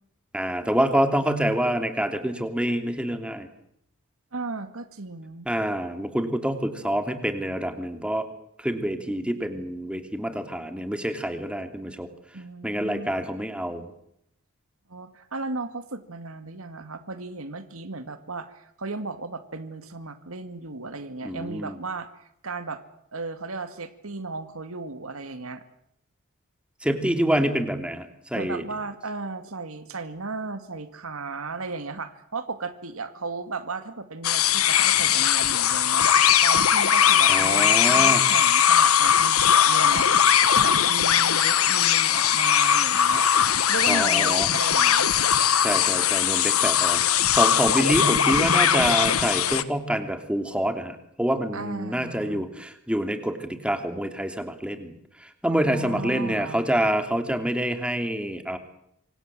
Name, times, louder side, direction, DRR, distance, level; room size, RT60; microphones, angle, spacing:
voice 1, 0.3-3.5 5.4-8.3 8.6-12.1 12.6-13.9 21.2-21.8 26.8-28.6 37.3-38.2 43.9-44.5 45.6-54.9 55.4-58.6, right 1 dB, 5° right, 7 dB, 3.0 m, -26 dB
voice 2, 4.3-5.5 12.3-13.1 14.9-22.1 22.4-22.8 23.1-25.6 28.3-36.1 36.4-43.3 43.7-45.3 51.5-52.5 55.5-56.7, right 3 dB, 75° right, 9 dB, 2.2 m, -35 dB
sound 1, 34.2-49.6, left 9 dB, 85° left, 1.4 m, -20 dB
27.5 x 25.0 x 7.7 m, 0.74 s
head